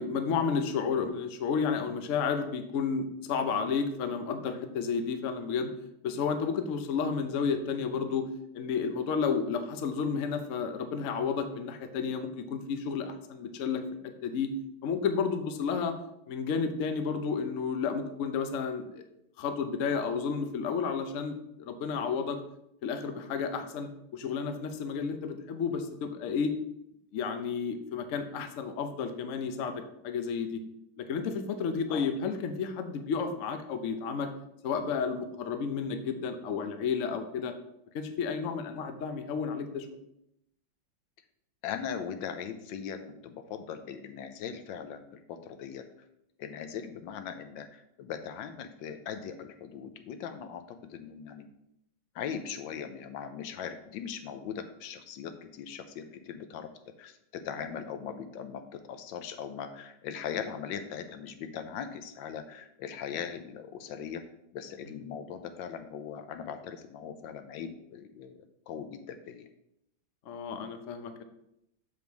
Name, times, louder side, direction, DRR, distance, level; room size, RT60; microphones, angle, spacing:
voice 1, 0.0-5.7 6.0-8.3 8.5-14.5 14.8-15.9 16.3-18.9 19.4-22.4 22.8-26.5 27.1-30.6 31.0-34.3 34.6-37.5 37.9-40.0 70.3-71.2, left 6 dB, 60° left, 7 dB, 0.8 m, -31 dB
voice 2, 41.6-45.8 46.4-51.5 52.1-56.7 57.0-64.2 64.5-68.4 68.7-69.5, left 7 dB, 80° left, 8 dB, 1.4 m, -40 dB
7.0 x 5.1 x 4.6 m, 0.79 s
omnidirectional pair, 2.1 m